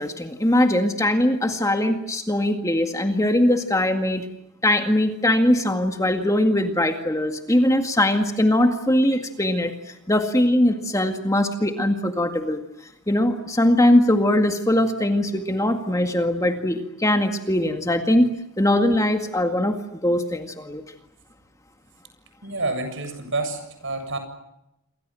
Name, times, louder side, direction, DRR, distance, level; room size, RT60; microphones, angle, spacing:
voice 1, 0.0-4.2 4.6-9.7 10.1-12.6 13.1-18.3 18.6-19.8 20.0-20.8, left 1 dB, 15° left, 5 dB, 2.0 m, -21 dB
voice 2, 22.4-24.2, right 2 dB, 55° right, 8 dB, 7.5 m, -28 dB
28.5 x 24.5 x 7.7 m, 0.86 s
head